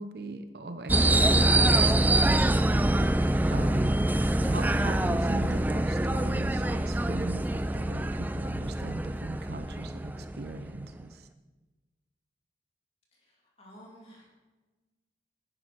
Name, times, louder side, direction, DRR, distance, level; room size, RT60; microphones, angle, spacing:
voice 1, 0.0-4.0 4.4-11.3, right 2 dB, 60° right, 9 dB, 0.7 m, -39 dB
sound 1, 0.9-10.8, right 1 dB, 10° right, 0.3 m, -25 dB
voice 2, 13.2-14.3, equal, 30° left, -3 dB, 2.5 m, -52 dB
11.0 x 10.0 x 4.6 m, 1.2 s
head